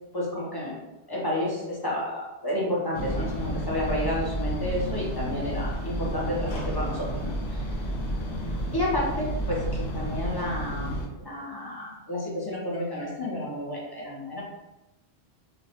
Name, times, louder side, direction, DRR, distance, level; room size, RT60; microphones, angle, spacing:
voice 1, 0.1-0.8 1.1-7.6 8.7-14.4, left 1 dB, 40° left, -5 dB, 0.3 m, -31 dB
sound 1, 2.9-11.1, right 1 dB, 80° left, 0.9 m, -31 dB
2.4 x 2.0 x 2.7 m, 0.98 s
omnidirectional pair, 1.1 m